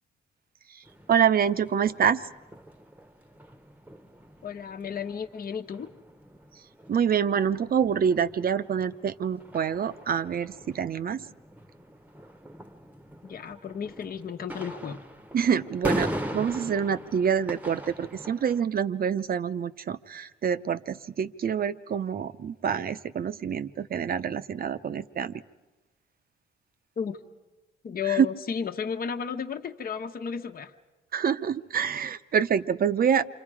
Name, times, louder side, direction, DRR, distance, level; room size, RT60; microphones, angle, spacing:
sound 1, 0.8-18.7, equal, 10° right, 1.1 m, -40 dB
voice 1, 1.1-2.3 6.9-11.3 15.3-25.3 28.1-28.3 31.1-33.2, right 7 dB, 50° right, 12 dB, 0.8 m, -26 dB
voice 2, 4.4-5.9 13.2-15.0 27.0-27.2 27.8-30.7, left 7 dB, 45° left, 4 dB, 1.2 m, -33 dB
28.5 x 25.5 x 4.9 m, 1.1 s
cardioid pair, 90°, 20 cm